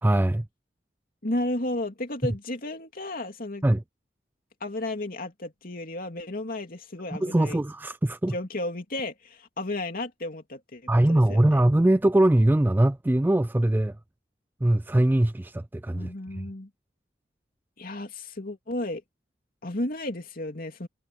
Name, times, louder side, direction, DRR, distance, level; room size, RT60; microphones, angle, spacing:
voice 1, 0.0-0.5 3.6-3.8 7.2-8.3 10.9-14.0 14.6-16.4, right 1 dB, 10° right, 0.3 m, -22 dB
voice 2, 1.2-3.6 4.6-7.6 8.3-11.6 15.9-16.7 17.8-19.0 19.6-20.9, left 1 dB, 50° left, 2.9 m, -33 dB
head